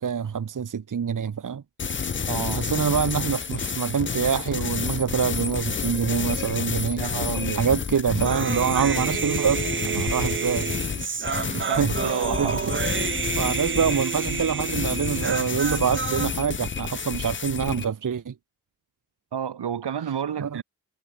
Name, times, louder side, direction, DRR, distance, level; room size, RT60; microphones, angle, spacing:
voice 1, 0.0-1.6 2.2-2.3 2.5-7.0 7.5-10.7 11.3-11.9 12.4-12.8 13.3-18.3 20.4-20.6, right 7 dB, 50° right, 1.0 m, -26 dB
sound 1, 1.8-17.9, left 6 dB, 30° left, 0.5 m, -30 dB
voice 2, 2.3-2.7 7.0-7.7 10.2-10.5 11.5-12.7 19.3-20.6, right 8 dB, 75° right, 1.4 m, -30 dB
Human voice, 8.3-16.3, right 5 dB, 30° right, 0.6 m, -29 dB
cardioid pair, 45°, 40 cm